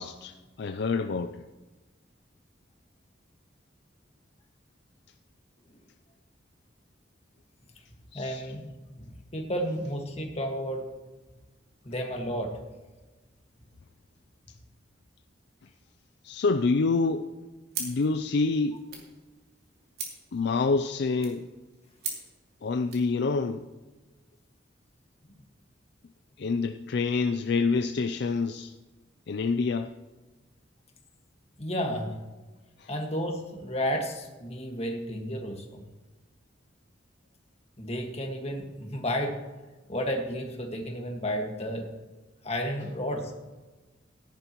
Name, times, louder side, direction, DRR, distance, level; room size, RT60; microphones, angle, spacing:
voice 1, 0.0-1.4 8.1-8.4 16.2-17.3 17.8-18.8 20.3-21.4 22.6-23.6 26.4-28.7 29.3-29.9 32.8-32.9, left 4 dB, 60° left, 8 dB, 0.4 m, -27 dB
voice 2, 8.1-8.7 9.3-10.9 11.9-12.5 31.6-32.1 32.9-35.8 37.8-39.4 39.9-41.9 42.4-43.3, equal, 35° left, 2 dB, 1.7 m, -32 dB
sound 1, 17.7-23.1, right 4 dB, 55° right, 3.1 m, -42 dB
17.0 x 10.5 x 3.0 m, 1.2 s
head